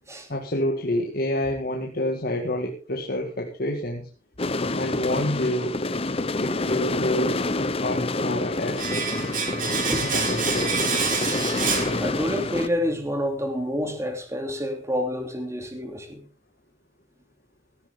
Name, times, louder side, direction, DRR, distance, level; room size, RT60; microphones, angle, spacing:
voice 1, 0.3-4.1 4.7-5.8 6.4-9.1 10.1-10.9, left 1 dB, 50° left, 2.0 m, -28 dB
sound 1, 4.4-12.7, left 2 dB, 30° left, 0.8 m, -27 dB
Domestic sounds home sounds, 8.8-12.6 12.8-13.0, right 5 dB, 45° right, 2.9 m, -28 dB
voice 2, 11.6-16.2, equal, 15° right, 2.9 m, -28 dB
16.5 x 13.5 x 3.7 m
head